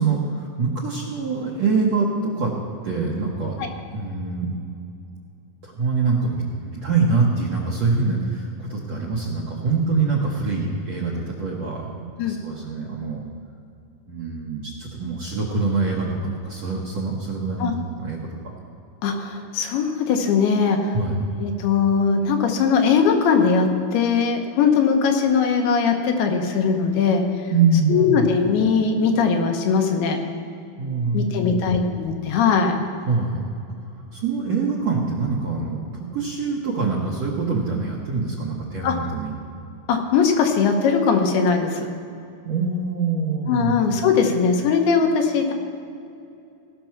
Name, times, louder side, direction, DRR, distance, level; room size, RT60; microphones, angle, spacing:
voice 1, 0.0-2.5 2.8-3.6 3.9-4.6 5.6-13.2 14.1-17.7 18.0-18.2 18.4-18.5 20.9-21.3 27.5-28.3 30.8-31.8 33.1-33.4 33.9-39.3 42.5-43.8, right 4 dB, 65° right, -2 dB, 1.7 m, -24 dB
voice 2, 19.0-21.0 21.4-27.5 27.9-30.2 31.1-32.8 38.8-38.9 39.9-41.9 43.5-45.5, left 5 dB, 80° left, 4 dB, 3.0 m, -20 dB
17.0 x 6.1 x 5.8 m, 2.6 s
omnidirectional pair, 4.5 m